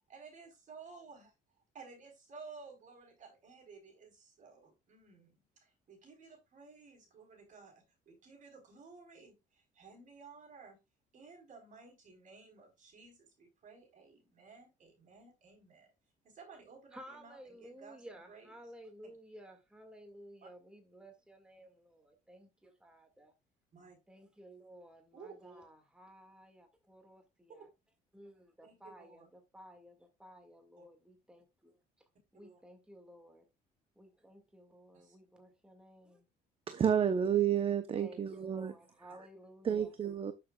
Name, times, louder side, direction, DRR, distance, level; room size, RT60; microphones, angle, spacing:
voice 1, 0.1-1.3 1.7-10.8 11.1-15.9 16.2-18.7 19.0-19.2 20.4-20.5 23.7-24.0 25.1-25.6 27.6-27.7 28.6-29.3 30.8-30.9 32.4-32.6 34.9-35.2 36.8-37.0 39.1-39.2, right 4 dB, 50° right, 4.4 m, -55 dB
voice 2, 16.9-23.3 24.1-27.7 28.1-31.7 32.3-33.5 34.0-36.3 38.0-39.9, equal, 5° right, 2.0 m, -55 dB
voice 3, 36.7-38.7 39.6-40.3, right 8 dB, 35° right, 0.8 m, -30 dB
12.5 x 6.8 x 2.4 m
cardioid pair, 110°, 17 cm